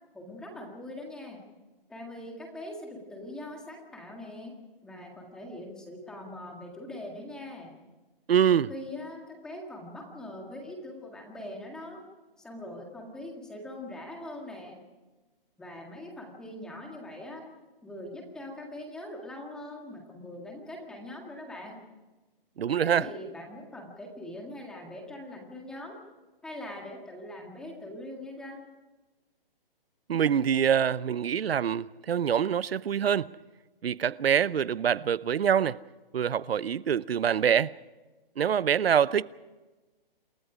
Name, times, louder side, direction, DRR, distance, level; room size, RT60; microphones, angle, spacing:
voice 1, 0.1-1.4 1.9-4.5 4.8-7.7 8.5-12.0 12.4-14.8 15.6-17.4 17.8-21.8 22.8-26.0 26.4-28.6, left 1 dB, ahead, 1.9 m, -42 dB
voice 2, 8.3-8.7 22.6-23.1 30.1-33.3 33.8-35.8 36.1-37.7 38.4-39.2, right 8 dB, 90° right, 0.8 m, -25 dB
28.0 x 22.0 x 5.0 m
hypercardioid pair, 175°, 29 cm